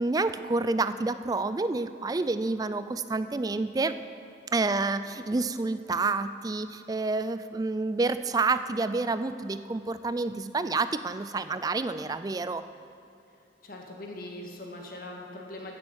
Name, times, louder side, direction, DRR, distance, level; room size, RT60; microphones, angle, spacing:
voice 1, 0.0-3.9 4.5-12.6, right 3 dB, 20° right, 12 dB, 0.3 m, -28 dB
voice 2, 13.6-15.7, left 1 dB, 50° left, 0 dB, 1.7 m, -41 dB
15.0 x 7.3 x 6.4 m, 2.7 s
head